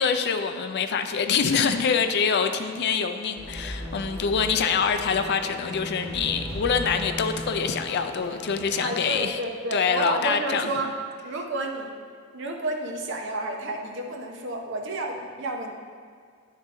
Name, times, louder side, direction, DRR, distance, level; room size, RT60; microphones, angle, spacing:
voice 1, 0.0-9.4 9.7-10.7, left 6 dB, 55° left, 8 dB, 0.4 m, -25 dB
sound 1, 3.4-9.2, equal, 15° left, 1.2 m, -37 dB
voice 2, 8.8-10.9 11.2-12.0 12.3-15.7, right 2 dB, 60° right, 2 dB, 0.8 m, -31 dB
9.7 x 3.7 x 3.7 m, 2.1 s
head